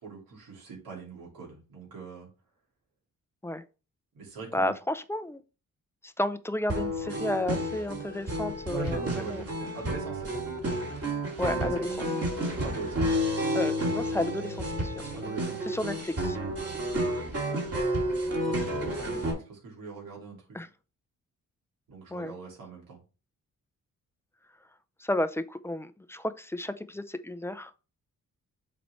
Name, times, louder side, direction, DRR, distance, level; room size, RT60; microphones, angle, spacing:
voice 1, 0.0-2.3 4.1-4.7 8.7-10.4 11.4-12.0 12.6-13.1 15.1-15.7 18.4-20.7 21.9-23.0, right 4 dB, 85° right, 2.7 m, -41 dB
voice 2, 4.5-5.4 6.0-9.4 11.4-11.8 13.5-15.1 15.7-16.4 20.5-20.7 22.1-22.3 25.0-27.7, left 1 dB, 10° left, 0.5 m, -32 dB
sound 1, 6.7-19.3, right 1 dB, 45° right, 2.5 m, -31 dB
7.2 x 4.2 x 3.2 m
cardioid pair, 80°, 33 cm